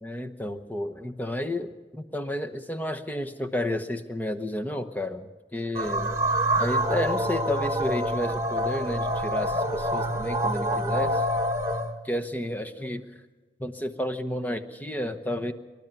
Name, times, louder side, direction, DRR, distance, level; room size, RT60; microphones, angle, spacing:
voice 1, 0.0-6.1 6.6-11.3 12.0-13.2 13.6-15.5, left 1 dB, 10° left, 7 dB, 0.9 m, -31 dB
sound 1, 5.7-11.9, right 1 dB, 15° right, 1.3 m, -26 dB
25.0 x 12.5 x 9.0 m, 1.3 s
head